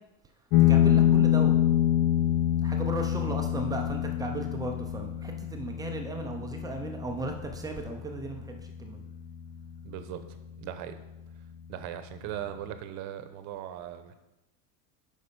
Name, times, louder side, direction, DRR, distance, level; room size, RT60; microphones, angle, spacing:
sound 1, 0.5-9.5, left 11 dB, 75° left, 1.0 m, -26 dB
voice 1, 0.7-1.6 2.6-9.0, right 2 dB, 10° right, 3 dB, 0.3 m, -36 dB
voice 2, 9.8-11.0 11.7-14.2, right 11 dB, 45° right, 9 dB, 0.8 m, -39 dB
8.1 x 5.4 x 5.1 m, 0.99 s
cardioid pair, 170°, 39 cm